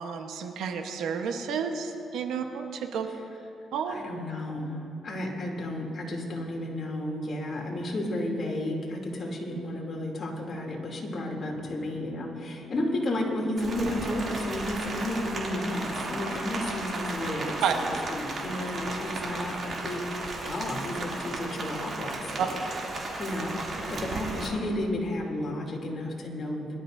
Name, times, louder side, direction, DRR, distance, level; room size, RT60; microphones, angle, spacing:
voice 1, 0.0-3.1 3.7-3.9 17.6-17.7 22.4-22.5, right 7 dB, 80° right, 5 dB, 1.0 m, -30 dB
voice 2, 3.9-20.0 20.4-22.5 23.0-23.6 23.9-26.8, left 1 dB, 45° left, -1 dB, 2.9 m, -32 dB
Rain, 13.6-24.5, right 2 dB, 50° right, 2.8 m, -35 dB
22.0 x 12.0 x 2.7 m, 2.8 s
cardioid pair, 90°, 0 cm